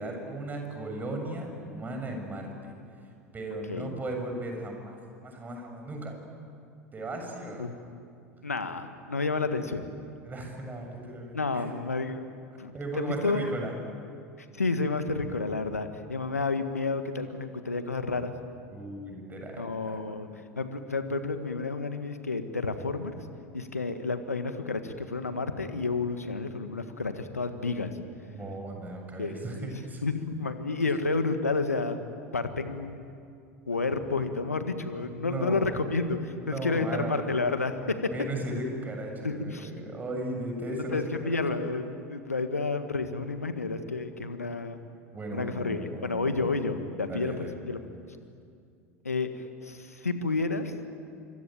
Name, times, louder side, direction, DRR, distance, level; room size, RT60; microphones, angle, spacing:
voice 1, 0.0-2.7 3.3-5.0 5.2-6.1 6.9-7.7 9.4-9.5 10.2-11.6 12.7-13.7 18.7-20.0 28.3-30.0 34.9-35.8 36.3-37.2 37.8-41.6 45.1-46.5 47.1-47.5, right 1 dB, 20° right, 3 dB, 7.3 m, -36 dB
voice 2, 8.4-9.8 11.3-12.3 12.6-13.5 14.5-18.3 19.6-23.1 23.5-27.9 29.2-29.7 30.0-32.0 32.3-33.0 33.7-38.0 39.2-39.7 40.9-44.8 45.3-47.8 49.0-49.3 49.6-50.7, left 3 dB, 85° left, 9 dB, 1.8 m, -30 dB
25.5 x 24.5 x 9.2 m, 2.4 s
figure-of-eight pair, 80°, 8 cm